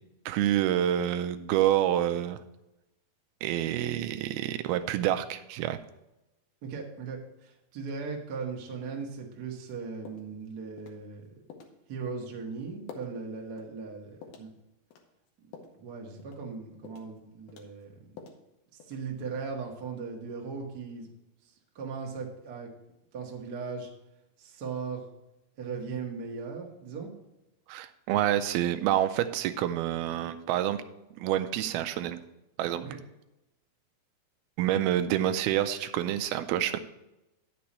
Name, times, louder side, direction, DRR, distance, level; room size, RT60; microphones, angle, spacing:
voice 1, 0.3-2.4 3.4-5.8 27.7-30.8 31.2-32.2 32.6-32.8 34.6-36.8, right 12 dB, 85° right, 9 dB, 2.5 m, -27 dB
voice 2, 6.6-11.2 11.9-14.5 15.5-17.9 18.9-21.1 21.7-22.7 23.1-23.9 24.4-25.1 25.6-27.1 32.8-33.0, right 5 dB, 55° right, -1 dB, 1.0 m, -38 dB
sound 1, 9.6-9.8 10.1-10.4 10.8-11.0 11.5-11.8 12.2-12.4 12.9-13.2 13.6-13.7 14.2-14.5 14.9-15.8 16.2-16.5 16.8-17.2 17.5-18.4 18.8-19.2, left 5 dB, 80° left, 3.0 m, -48 dB
10.0 x 6.9 x 4.2 m, 0.92 s
omnidirectional pair, 4.4 m